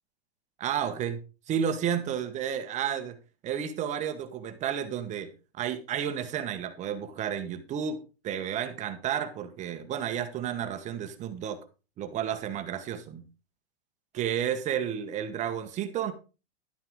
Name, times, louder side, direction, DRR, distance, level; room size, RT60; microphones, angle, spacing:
voice 1, 0.6-1.2 1.5-3.2 3.4-5.3 5.6-8.0 8.2-11.6 12.0-13.3 14.2-16.1, right 9 dB, 20° right, 1.2 m, -31 dB
11.5 x 8.9 x 3.6 m
hypercardioid pair, 145°, 33 cm